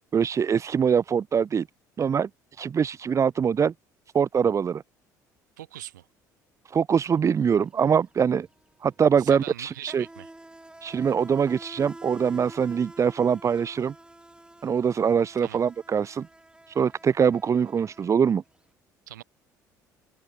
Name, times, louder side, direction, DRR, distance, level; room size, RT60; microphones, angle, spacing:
voice 1, 0.1-1.7 2.0-3.7 4.1-4.8 6.7-8.5 8.8-10.0 10.8-13.9 14.6-16.3 16.7-18.4, right 7 dB, 30° right, 0.5 m, -23 dB
voice 2, 5.6-6.1 9.2-10.3 15.4-15.6 19.1-19.2, right 13 dB, 80° right, 2.7 m, -41 dB
Insect, 7.2-7.4 7.6-18.6, right 1 dB, 10° right, 2.8 m, -48 dB
open air
hypercardioid pair, 60°, 10 cm